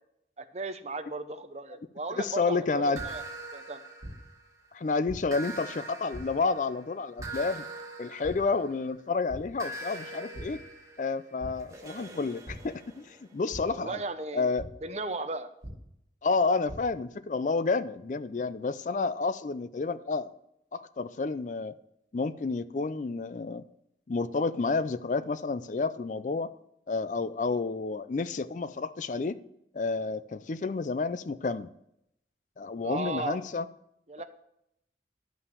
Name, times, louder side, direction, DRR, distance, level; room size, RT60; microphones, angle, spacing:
voice 1, 0.4-3.2 3.5-3.8 13.7-14.5 14.8-15.5 32.8-33.4 34.1-34.2, right 2 dB, 40° right, 10 dB, 0.7 m, -36 dB
voice 2, 2.2-3.0 4.7-7.6 8.0-10.6 11.0-14.0 14.3-14.7 16.2-20.3 20.7-21.7 22.1-23.6 24.1-26.5 26.9-29.4 29.7-31.7 32.6-33.7, left 4 dB, 45° left, 15 dB, 0.4 m, -30 dB
sound 1, 2.9-3.0 4.0-4.1 5.1-5.2 6.1-6.2 7.2-7.3 8.2-8.3 8.8-9.0 9.3-9.4 10.3-10.4 11.4-11.5 12.5-12.6 13.5-13.6 14.6-14.7 15.6-15.7 16.4-16.8, right 1 dB, 75° right, 2.4 m, -40 dB
sound 2, 3.0-4.7 5.3-9.0 9.6-13.3, right 2 dB, 20° right, 1.4 m, -43 dB
11.0 x 5.7 x 6.9 m, 0.78 s
head